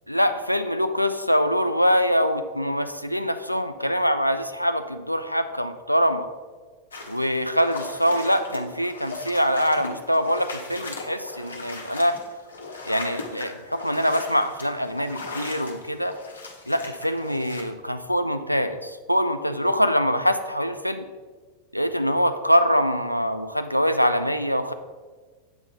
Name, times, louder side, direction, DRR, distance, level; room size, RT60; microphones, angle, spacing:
voice 1, 0.1-6.3 7.1-12.1 12.9-16.1 16.7-21.1 21.7-24.7, equal, 90° left, 9 dB, 0.4 m, -24 dB
sound 1, 6.9-17.6, left 3 dB, 70° left, 1.1 m, -38 dB
8.1 x 3.7 x 5.0 m, 1.4 s
figure-of-eight pair, 90°, 0 cm